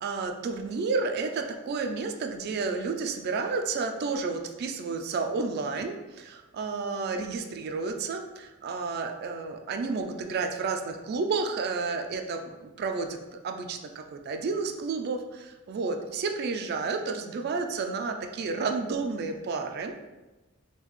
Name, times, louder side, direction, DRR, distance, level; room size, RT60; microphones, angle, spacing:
voice 1, 0.0-19.9, right 4 dB, 50° right, 5 dB, 0.3 m, -31 dB
3.7 x 2.3 x 3.1 m, 1.1 s
head